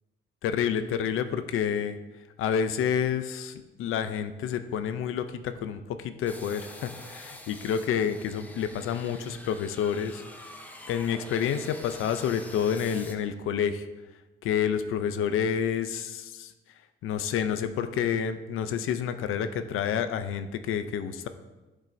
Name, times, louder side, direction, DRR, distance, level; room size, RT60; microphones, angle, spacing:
voice 1, 0.4-2.0 2.4-10.5 10.9-13.9 14.4-16.5 17.0-21.3, left 8 dB, 80° left, 10 dB, 0.6 m, -29 dB
sound 1, 6.3-13.2, left 1 dB, 10° left, 0.5 m, -46 dB
12.0 x 5.3 x 2.7 m, 1.1 s
cardioid pair, 170°, 21 cm